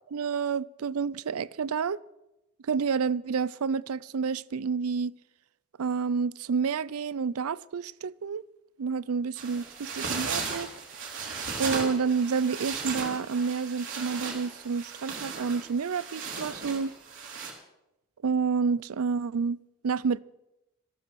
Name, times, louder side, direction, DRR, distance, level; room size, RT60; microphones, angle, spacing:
voice 1, 0.1-2.0 2.6-5.1 5.8-8.4 8.8-10.7 11.2-16.9 18.2-20.2, right 5 dB, 80° right, 0.5 m, -29 dB
sound 1, 9.4-17.5, right 5 dB, 60° right, 3.8 m, -36 dB
14.0 x 13.5 x 6.0 m
head